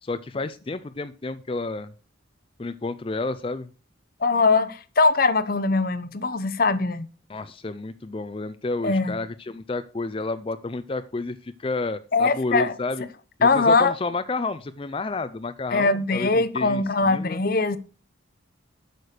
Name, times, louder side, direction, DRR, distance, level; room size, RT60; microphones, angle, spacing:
voice 1, 0.0-1.9 2.6-3.7 7.3-13.0 13.4-17.4, left 3 dB, 25° left, 0.4 m, -30 dB
voice 2, 4.2-7.1 8.8-9.2 12.1-12.7 13.4-13.9 15.7-17.8, left 3 dB, 45° left, 0.8 m, -21 dB
8.6 x 6.6 x 6.6 m
head